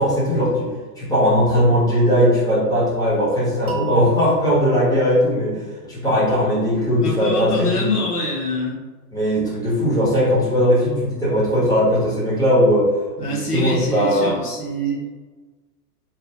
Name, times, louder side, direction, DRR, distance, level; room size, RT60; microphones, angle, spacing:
voice 1, 0.0-5.6 5.9-8.0 9.1-12.9 13.2-14.3, equal, 5° left, -9 dB, 1.2 m, -19 dB
sound 1, 3.7-6.6, equal, 40° right, 0.4 m, -34 dB
voice 2, 7.0-8.8 13.2-15.0, left 1 dB, 70° left, -3 dB, 1.2 m, -24 dB
3.0 x 2.4 x 2.8 m, 1.3 s
figure-of-eight pair, 110°, 48 cm